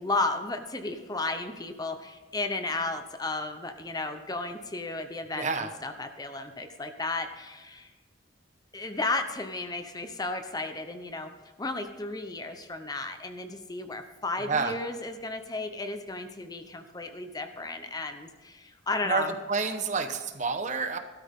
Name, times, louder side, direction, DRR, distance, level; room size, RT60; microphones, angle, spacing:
voice 1, 0.0-7.9 8.7-11.3 11.6-19.3, left 2 dB, 20° left, 7 dB, 0.9 m, -34 dB
voice 2, 5.3-5.7 14.4-14.7 19.0-21.0, right 4 dB, 40° right, 6 dB, 1.1 m, -29 dB
16.5 x 13.0 x 3.7 m, 1.3 s
head